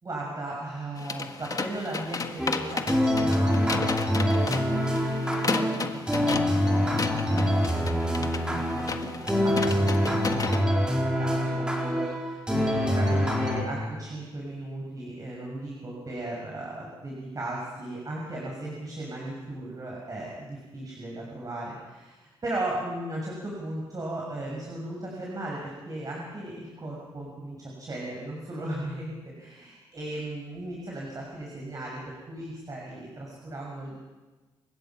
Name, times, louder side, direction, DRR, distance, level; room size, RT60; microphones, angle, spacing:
voice 1, 0.0-5.1 5.4-34.0, right 1 dB, 40° right, -3 dB, 6.5 m, -37 dB
sound 1, 1.0-10.6, left 4 dB, 40° left, 1.6 m, -34 dB
sound 2, 2.4-13.6, equal, 10° right, 4.6 m, -25 dB
29.0 x 15.5 x 6.0 m, 1.2 s
cardioid pair, 65°, 10 cm